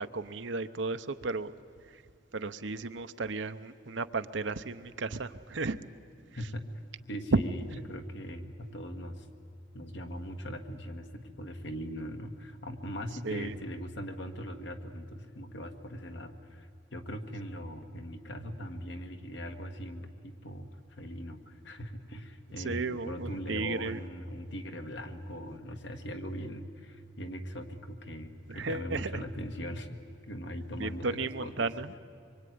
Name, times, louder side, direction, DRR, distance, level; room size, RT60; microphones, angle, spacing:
voice 1, 0.0-1.5 2.3-5.8 7.3-7.4 13.2-13.5 22.6-24.0 28.5-29.2 30.8-31.9, right 3 dB, 70° right, 10 dB, 0.9 m, -33 dB
voice 2, 6.4-6.7 7.1-9.3 9.7-30.0 30.2-31.7, equal, 65° left, 5 dB, 1.8 m, -40 dB
25.0 x 24.0 x 9.5 m, 2.2 s
head